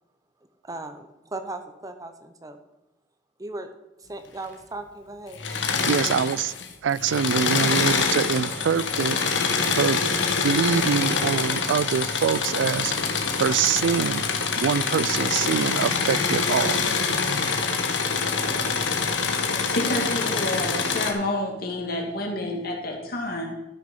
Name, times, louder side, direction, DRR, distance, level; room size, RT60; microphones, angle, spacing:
voice 1, 0.6-2.6 3.4-3.7 4.0-5.4, right 2 dB, 20° right, 7 dB, 0.8 m, -37 dB
Engine / Mechanisms, 5.3-6.7 7.0-21.1, left 5 dB, 80° left, 1.4 m, -25 dB
voice 2, 5.9-6.5 6.8-9.2 9.8-10.1 10.4-12.9 13.4-14.3 14.6-16.8, right 7 dB, 80° right, 21 dB, 0.3 m, -24 dB
voice 3, 19.7-23.5, left 1 dB, 55° left, 0 dB, 2.5 m, -29 dB
13.0 x 6.2 x 5.5 m, 0.95 s
head